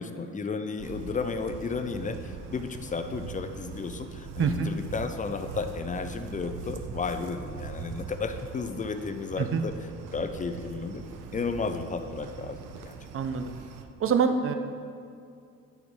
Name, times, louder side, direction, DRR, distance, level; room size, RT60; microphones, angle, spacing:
voice 1, 0.0-9.7 10.1-11.0 11.3-12.9, left 4 dB, 25° left, 8 dB, 0.5 m, -33 dB
sound 1, 0.8-13.8, right 6 dB, 90° right, 0.6 m, -41 dB
voice 2, 4.4-4.7 9.4-9.6 13.1-13.5 14.0-14.5, right 6 dB, 45° right, 8 dB, 0.6 m, -25 dB
9.0 x 4.8 x 3.6 m, 2.4 s
cardioid pair, 90°, 30 cm